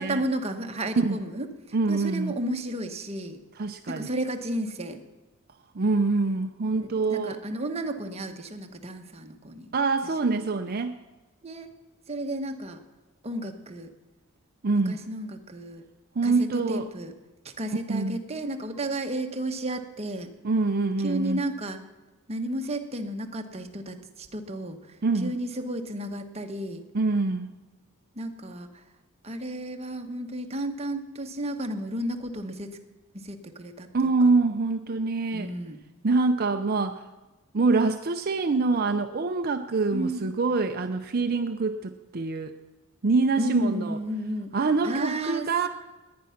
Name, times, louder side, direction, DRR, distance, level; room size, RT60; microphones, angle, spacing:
voice 1, 0.0-1.5 1.9-3.4 3.9-5.0 6.8-9.7 11.4-11.7 12.1-12.8 13.2-13.9 14.9-15.8 16.2-17.1 17.6-20.3 21.0-21.8 22.3-24.8 25.2-26.8 28.1-28.8 29.2-32.8 33.1-34.1 35.3-35.8 39.9-40.3 43.4-44.5 44.8-45.7, right 1 dB, 30° right, 5 dB, 1.2 m, -32 dB
voice 2, 1.7-2.3 3.6-4.1 5.7-7.4 9.7-11.0 14.6-15.0 16.2-16.9 17.9-18.2 20.4-21.4 25.0-25.3 26.9-27.5 33.9-35.5 36.0-37.1 37.5-42.5 43.0-44.0 44.5-45.7, right 3 dB, 45° right, 7 dB, 0.6 m, -25 dB
20.0 x 9.5 x 5.8 m, 1.2 s
head